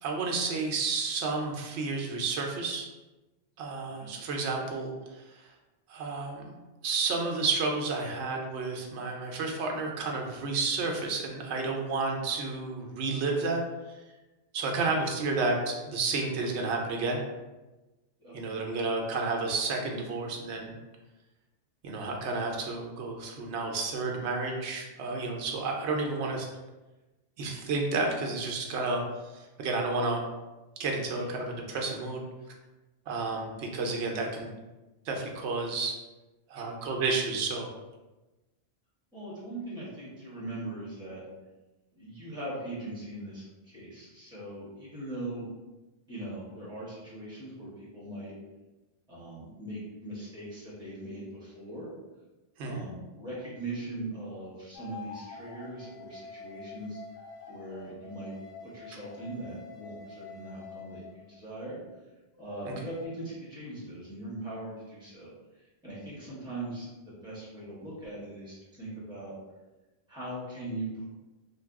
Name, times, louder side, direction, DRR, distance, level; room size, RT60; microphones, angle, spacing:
voice 1, 0.0-2.9 3.6-5.2 5.9-6.6 6.8-13.6 13.9-14.0 14.5-17.2 18.3-20.8 21.8-26.5 27.4-29.0 29.3-30.2 30.8-32.2 33.1-34.5 35.1-35.9 36.5-37.7 52.6-52.8 62.6-62.7, right 3 dB, 85° right, 1 dB, 0.9 m, -31 dB
voice 2, 18.2-18.5 31.2-31.4 39.1-41.2 42.0-45.5 46.1-48.3 49.1-51.9 52.6-57.0 57.5-58.3 58.6-61.8 62.4-65.3 65.6-66.9 67.2-69.3 70.1-71.0, right 1 dB, 5° right, -8 dB, 1.0 m, -40 dB
sound 1, 54.7-61.4 62.3-63.1, left 4 dB, 85° left, 0.9 m, -47 dB
2.6 x 2.2 x 3.4 m, 1.1 s
omnidirectional pair, 1.1 m